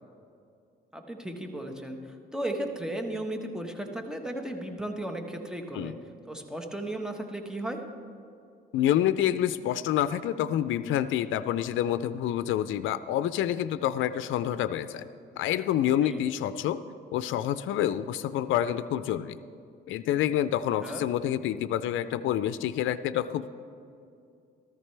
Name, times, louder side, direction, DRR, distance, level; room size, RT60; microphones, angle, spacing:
voice 1, 0.9-5.9 6.3-7.8 16.0-16.2 20.8-21.0, right 1 dB, 5° right, 4 dB, 1.3 m, -35 dB
voice 2, 8.7-15.1 15.4-16.8 17.1-19.4 19.9-23.6, left 11 dB, 80° left, 13 dB, 0.4 m, -28 dB
14.0 x 14.0 x 3.3 m, 2.5 s
cardioid pair, 90°, 20 cm